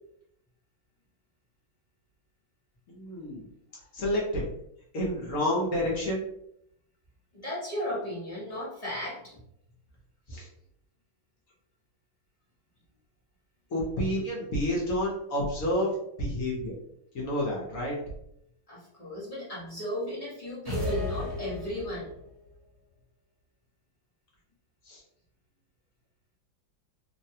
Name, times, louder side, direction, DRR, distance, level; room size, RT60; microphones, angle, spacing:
voice 1, 2.9-3.4 3.9-4.5 4.9-6.2 10.3-10.5 13.7-16.7 17.1-18.0 24.8-25.0, left 1 dB, 55° left, -4 dB, 0.9 m, -29 dB
voice 2, 7.3-9.4 18.7-22.1, left 1 dB, 30° left, -8 dB, 0.6 m, -35 dB
sound 1, 20.6-22.2, left 1 dB, 40° right, 1.2 m, -33 dB
3.2 x 2.2 x 2.7 m, 0.77 s
omnidirectional pair, 2.1 m